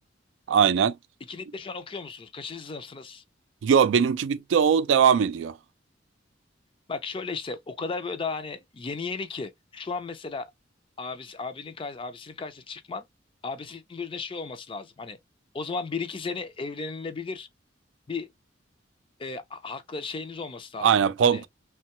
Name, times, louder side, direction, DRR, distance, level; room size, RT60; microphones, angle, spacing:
voice 1, 0.5-0.9 3.6-5.5 20.8-21.5, right 7 dB, 75° right, 0.3 m, -20 dB
voice 2, 1.3-3.2 6.9-10.5 11.0-13.0 13.4-15.2 15.5-17.5 18.1-18.3 19.2-20.9 21.2-21.5, left 4 dB, 30° left, 0.4 m, -35 dB
3.0 x 2.2 x 2.8 m
head